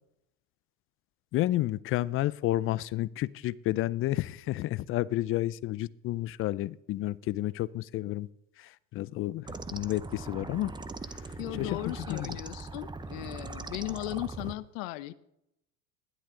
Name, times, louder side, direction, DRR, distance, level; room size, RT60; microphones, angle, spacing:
voice 1, 1.3-8.3 8.6-10.7 11.1-11.2 11.6-12.4, left 15 dB, 35° left, 21 dB, 0.4 m, -31 dB
sound 1, 9.5-14.6, right 3 dB, 10° right, 0.7 m, -41 dB
voice 2, 11.4-15.1, left 17 dB, 70° left, 16 dB, 0.9 m, -37 dB
16.0 x 11.5 x 3.8 m, 0.81 s
supercardioid pair, 105°, 40 cm